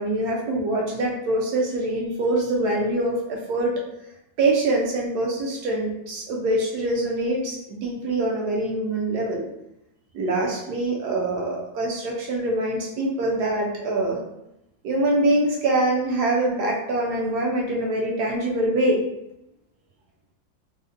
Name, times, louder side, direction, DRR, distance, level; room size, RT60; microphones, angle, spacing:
voice 1, 0.0-3.8 4.4-9.5 10.1-14.2 14.8-19.0, right 1 dB, 70° right, -1 dB, 1.0 m, -24 dB
4.0 x 2.1 x 2.5 m, 0.85 s
omnidirectional pair, 2.0 m